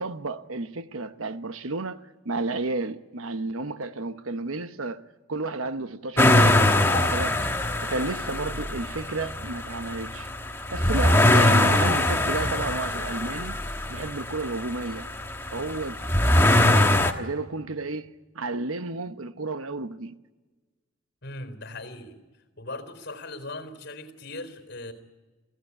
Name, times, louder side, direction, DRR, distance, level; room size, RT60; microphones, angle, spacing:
voice 1, 0.0-7.4 7.8-10.3 10.7-13.6 13.9-15.1 15.5-16.0 16.6-20.1, right 3 dB, 75° right, 1.0 m, -32 dB
sound 1, 6.2-17.1, left 1 dB, 10° left, 1.3 m, -23 dB
voice 2, 21.2-22.2 22.6-24.9, left 2 dB, 50° left, 4.1 m, -39 dB
27.0 x 16.0 x 10.0 m
head